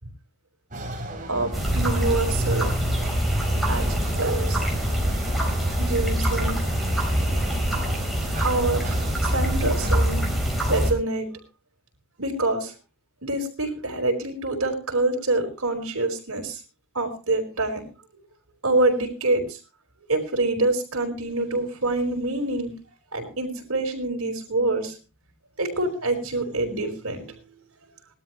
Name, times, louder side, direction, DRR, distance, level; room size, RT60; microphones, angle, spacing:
sound 1, 0.7-10.0, right 1 dB, 35° right, 3.5 m, -34 dB
voice 1, 1.3-2.7 3.7-4.7 5.8-6.6 8.4-8.9 9.2-10.2 10.7-11.3 12.2-12.7 13.2-16.6 16.9-17.8 18.6-19.6 20.1-22.7 23.1-24.9 25.6-27.3, right 2 dB, 65° right, 1 dB, 4.8 m, -26 dB
sound 2, 1.5-10.9, equal, ahead, 4.1 m, -24 dB
20.0 x 13.0 x 3.1 m, 0.32 s
head